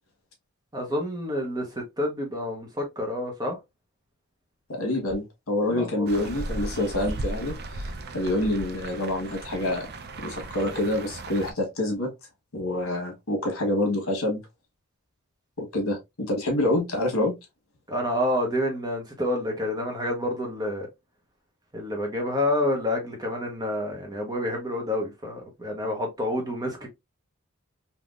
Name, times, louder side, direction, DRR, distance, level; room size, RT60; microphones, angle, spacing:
voice 1, 0.7-3.6 5.7-6.3 17.9-20.9 21.7-26.9, left 1 dB, 20° right, 0.9 m, -28 dB
voice 2, 4.7-7.9 8.1-9.9 10.2-12.1 12.5-14.4 15.6-17.3, left 1 dB, 65° left, 1.3 m, -27 dB
sound 1, 6.1-11.5, right 2 dB, 45° right, 0.5 m, -36 dB
3.5 x 2.8 x 2.4 m
head